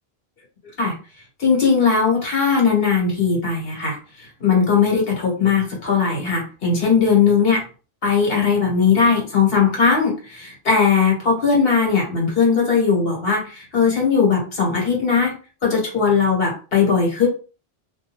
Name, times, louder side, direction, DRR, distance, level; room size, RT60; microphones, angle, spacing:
voice 1, 1.4-4.0 4.4-7.6 8.0-15.3 15.6-17.3, left 5 dB, 65° left, -1 dB, 1.3 m, -18 dB
2.3 x 2.2 x 2.9 m, 0.35 s
omnidirectional pair, 1.0 m